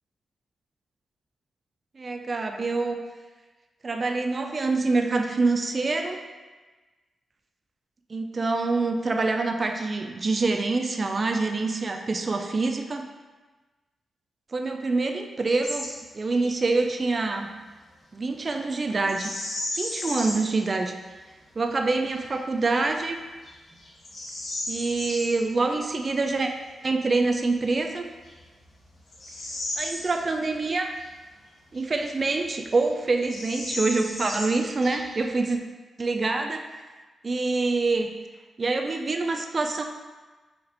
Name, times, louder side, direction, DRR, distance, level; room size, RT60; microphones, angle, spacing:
voice 1, 2.0-3.0 3.8-6.2 8.1-13.0 14.5-17.5 18.1-19.3 19.8-20.9 21.6-23.2 24.7-26.5 26.8-28.1 29.8-31.0 31.7-35.6 36.0-36.6 37.2-38.1 38.6-39.8, right 3 dB, 45° right, 4 dB, 0.4 m, -26 dB
Bird vocalization bird call bird song, 15.6-15.9 16.2-16.5 19.0-20.5 21.1-21.2 21.8-22.2 22.8-22.9 23.4-25.3 27.4-27.5 28.2-30.6 31.0-31.1 31.7-32.5 32.8-32.9 33.2-35.3, left 1 dB, 60° left, 1.2 m, -35 dB
4.2 x 2.5 x 4.2 m, 1.3 s
supercardioid pair, 50°, 0 cm